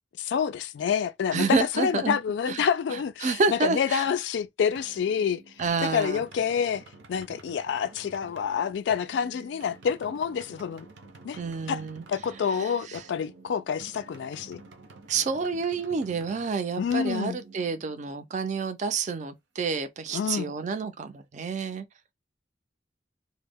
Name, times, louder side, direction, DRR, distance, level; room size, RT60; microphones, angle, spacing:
voice 1, 0.2-1.5 1.8-5.4 5.8-10.9 11.2-11.4 11.7-11.8 12.1-14.6 16.8-17.4 20.1-20.5, left 7 dB, 80° left, 0.3 m, -28 dB
voice 2, 1.3-2.2 2.5-4.1 5.6-6.2 11.4-12.0 12.5-13.0 15.1-21.8, right 4 dB, 40° right, 0.4 m, -29 dB
sound 1, 4.7-18.3, right 3 dB, 85° right, 0.6 m, -50 dB
2.1 x 2.0 x 3.4 m
head